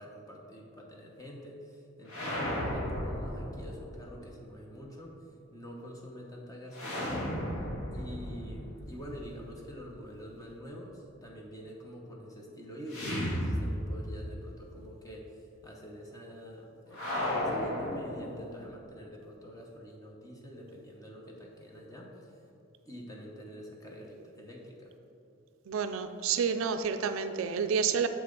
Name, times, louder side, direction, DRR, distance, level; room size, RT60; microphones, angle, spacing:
voice 1, 0.0-5.2 5.5-7.3 7.9-22.3 22.8-24.9, equal, 15° left, -1 dB, 0.8 m, -46 dB
sound 1, 2.1-4.0 6.7-9.7 12.9-14.3 14.6-14.7 16.9-18.7, left 1 dB, 70° left, 1.5 m, -34 dB
voice 2, 25.7-28.1, right 6 dB, 65° right, 9 dB, 0.3 m, -29 dB
7.2 x 5.6 x 3.9 m, 2.9 s
head